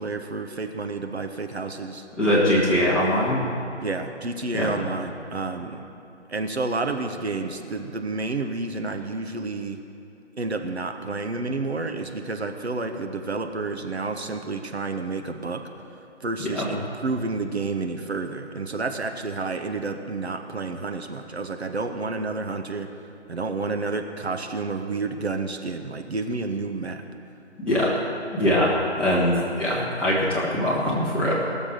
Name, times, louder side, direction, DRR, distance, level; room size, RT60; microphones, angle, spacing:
voice 1, 0.0-2.0 3.8-5.8 6.3-9.8 10.4-15.6 16.2-22.9 23.3-27.0, right 3 dB, 65° right, 6 dB, 1.0 m, -30 dB
voice 2, 2.2-3.4 4.5-4.7 16.5-16.7 27.6-27.9 28.3-31.3, equal, 5° left, -10 dB, 1.6 m, -22 dB
18.0 x 7.1 x 6.6 m, 2.8 s
figure-of-eight pair, 145°, 35 cm